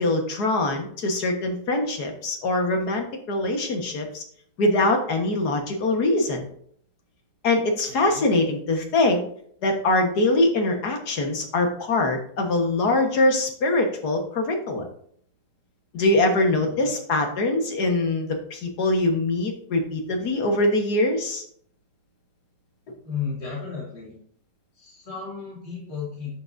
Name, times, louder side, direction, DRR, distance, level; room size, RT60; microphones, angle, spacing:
voice 1, 0.0-4.2 4.6-6.5 7.4-9.2 9.6-14.9 15.9-21.4, left 2 dB, 65° left, 3 dB, 1.9 m, -23 dB
voice 2, 7.9-8.2 16.5-16.9 23.0-24.2 24.7-26.4, left 6 dB, 30° left, -6 dB, 2.7 m, -34 dB
11.0 x 6.8 x 2.7 m, 0.62 s
omnidirectional pair, 1.9 m